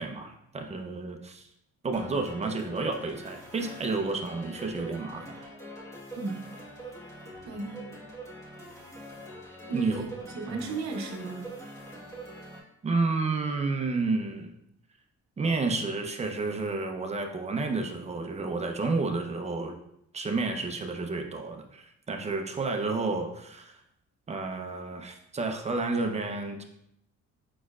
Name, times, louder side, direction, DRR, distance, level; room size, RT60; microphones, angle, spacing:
voice 1, 0.0-1.5 1.8-5.5 9.7-10.0 10.5-10.6 12.8-14.5 15.4-19.8 20.1-23.8 24.3-26.6, right 3 dB, 20° right, 4 dB, 0.6 m, -30 dB
sound 1, 1.9-12.6, right 1 dB, 10° left, 1.3 m, -44 dB
voice 2, 7.4-8.0 9.7-11.5, right 4 dB, 60° right, 3 dB, 0.9 m, -36 dB
4.9 x 4.3 x 2.4 m, 0.78 s
cardioid pair, 90°, 30 cm